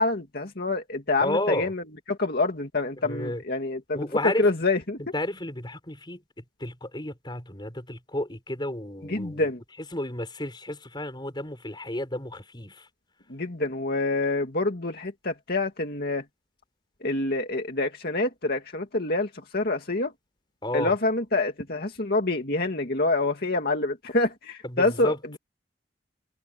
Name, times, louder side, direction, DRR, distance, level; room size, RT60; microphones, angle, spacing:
voice 1, 0.0-5.0 9.0-9.6 13.3-16.2 17.0-20.1 20.7-25.4, left 2 dB, 55° left, 2.3 m, -27 dB
voice 2, 1.2-1.7 3.0-3.4 3.9-4.5 5.1-9.5 9.9-12.9 20.6-20.9 24.6-25.2, left 1 dB, 25° left, 5.5 m, -32 dB
head